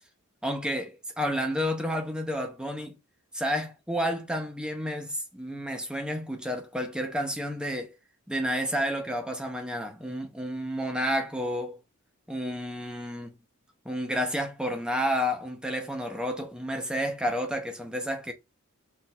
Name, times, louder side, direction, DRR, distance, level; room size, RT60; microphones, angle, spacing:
voice 1, 0.4-3.0 3.3-8.0 8.3-11.8 12.3-13.3 13.8-18.3, equal, 5° right, 0.6 m, -30 dB
5.7 x 3.2 x 2.2 m
head